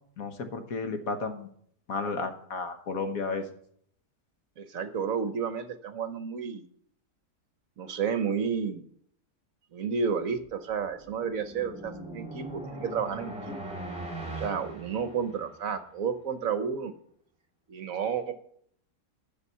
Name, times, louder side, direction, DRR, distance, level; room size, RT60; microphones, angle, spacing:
voice 1, 0.2-1.5 1.9-3.5, left 4 dB, 60° left, 6 dB, 1.5 m, -33 dB
voice 2, 4.6-6.6 7.8-8.8 9.7-13.6 14.4-16.9 17.7-18.3, right 6 dB, 60° right, 10 dB, 1.1 m, -31 dB
sound 1, 10.7-15.7, right 1 dB, 5° right, 2.3 m, -40 dB
11.0 x 7.0 x 5.5 m, 0.64 s
omnidirectional pair, 1.8 m